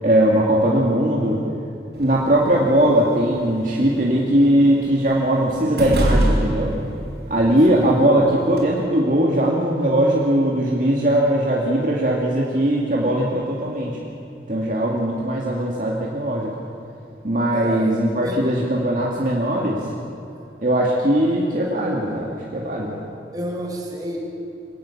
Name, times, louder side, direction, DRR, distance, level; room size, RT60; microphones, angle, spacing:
voice 1, 0.0-1.4 2.0-6.7 7.3-14.0 14.5-16.5 17.2-19.8 20.6-23.0, right 1 dB, 50° right, -3 dB, 2.3 m, -19 dB
sound 1, 1.9-8.6, equal, 65° right, 5.0 m, -27 dB
voice 2, 7.7-8.1 17.5-18.4 23.3-24.2, equal, 20° right, -1 dB, 4.8 m, -31 dB
25.0 x 19.0 x 7.3 m, 2.7 s
head